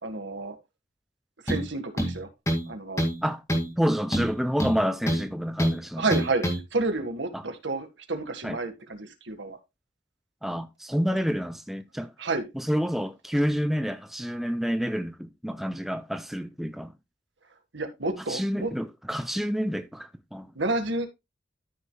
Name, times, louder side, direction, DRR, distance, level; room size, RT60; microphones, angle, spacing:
voice 1, 0.0-0.5 1.4-2.3 2.7-3.0 6.0-6.4 6.7-9.6 12.2-12.5 17.7-18.7 20.5-21.1, right 3 dB, 75° right, 1.7 m, -30 dB
sound 1, 1.5-1.7 2.0-2.7 3.0-3.2 3.5-3.7 4.1-5.3 5.6-5.8 6.1-6.6, equal, 15° left, 2.2 m, -26 dB
voice 2, 3.8-6.1 7.3-7.4 8.4-8.6 10.4-12.1 12.5-16.9 18.3-20.5, equal, ahead, 0.5 m, -28 dB
13.5 x 6.4 x 2.3 m
head